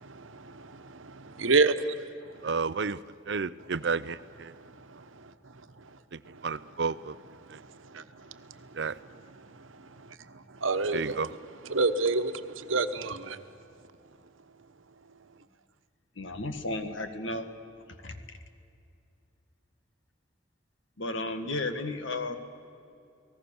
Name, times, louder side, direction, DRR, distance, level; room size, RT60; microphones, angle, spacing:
voice 1, 1.4-1.9 10.6-11.2 11.7-12.3 12.7-13.4, right 3 dB, 85° right, 10 dB, 1.2 m, -25 dB
voice 2, 2.4-3.0 3.3-4.5 6.1-7.1 7.5-7.6 8.8-9.0 10.9-11.3, right 5 dB, 60° right, 16 dB, 0.6 m, -31 dB
voice 3, 16.2-17.5 18.0-18.2 21.0-22.4, left 2 dB, 80° left, 8 dB, 1.9 m, -33 dB
29.5 x 19.0 x 7.1 m, 2.5 s
head